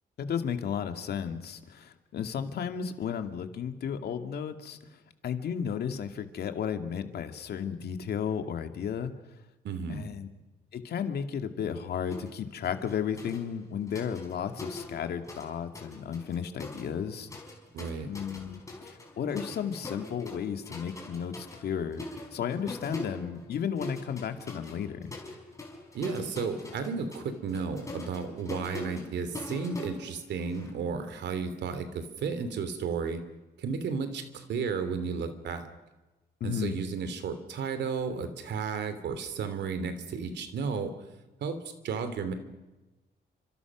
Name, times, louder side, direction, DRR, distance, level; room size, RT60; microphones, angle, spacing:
voice 1, 0.2-4.8 5.2-9.1 9.9-10.3 10.7-17.3 18.1-22.0 22.3-25.2 36.4-36.7, left 7 dB, 70° left, 7 dB, 2.3 m, -33 dB
voice 2, 9.6-10.1 17.7-18.1 25.9-33.2 33.6-35.7 36.4-41.0 41.4-41.6 41.8-42.3, right 5 dB, 85° right, 10 dB, 3.1 m, -33 dB
sound 1, 12.1-12.4 12.6-15.5 15.7-30.7, left 2 dB, 15° left, 5.1 m, -43 dB
29.5 x 26.0 x 6.2 m, 1.1 s
wide cardioid pair, 165°, 18 cm